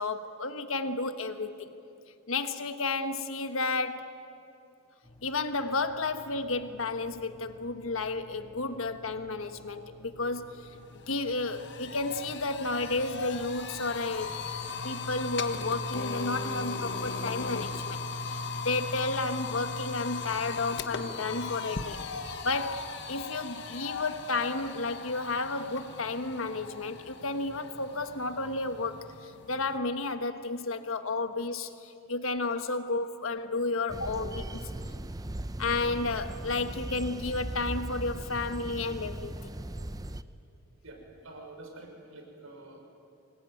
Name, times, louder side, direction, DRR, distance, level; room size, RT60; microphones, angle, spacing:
voice 1, 0.0-1.7 2.3-4.1 5.2-14.3 14.8-22.0 22.4-34.3 35.6-39.5, left 3 dB, 75° left, 9 dB, 1.4 m, -32 dB
sound 1, 5.0-16.9, left 2 dB, 20° left, 2.9 m, -54 dB
sound 2, 10.3-10.4 10.8-29.8, left 4 dB, 55° left, 1.4 m, -38 dB
sound 3, 33.9-40.2, right 1 dB, 20° right, 0.6 m, -38 dB
voice 2, 40.8-42.8, right 2 dB, 85° right, 1 dB, 5.9 m, -47 dB
26.0 x 21.0 x 9.3 m, 2.7 s
head